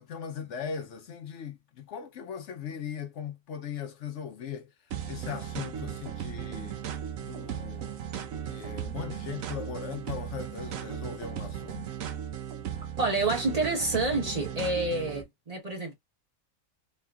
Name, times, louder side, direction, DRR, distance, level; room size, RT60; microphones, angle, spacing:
voice 1, 0.0-4.7 5.1-6.8 7.2-11.9, left 7 dB, 70° left, 0.9 m, -39 dB
sound 1, 4.9-15.2, right 9 dB, 90° right, 1.1 m, -37 dB
voice 2, 13.0-15.9, right 2 dB, 30° right, 1.2 m, -28 dB
3.9 x 3.1 x 2.3 m
omnidirectional pair, 1.4 m